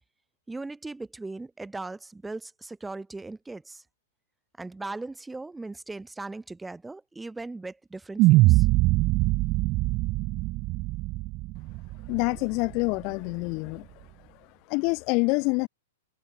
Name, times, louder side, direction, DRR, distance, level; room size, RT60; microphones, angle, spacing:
voice 1, 0.5-3.8 4.6-8.7, right 3 dB, 5° right, 1.8 m, -38 dB
sound 1, 8.2-12.5, right 21 dB, 35° right, 0.4 m, -23 dB
voice 2, 12.1-13.9 14.7-15.7, left 31 dB, 40° left, 2.1 m, -26 dB
figure-of-eight pair, 110°, 0 cm